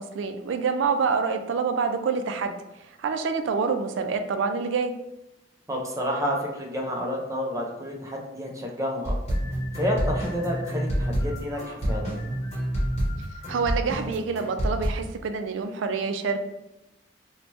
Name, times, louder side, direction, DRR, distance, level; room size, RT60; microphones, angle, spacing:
voice 1, 0.0-4.9 13.5-16.4, right 5 dB, 85° right, 7 dB, 0.3 m, -27 dB
voice 2, 5.7-9.1 9.7-12.1, equal, 15° right, -1 dB, 0.5 m, -30 dB
sound 1, 9.0-14.9, equal, 40° left, 1.0 m, -28 dB
2.8 x 2.2 x 3.1 m, 0.91 s
head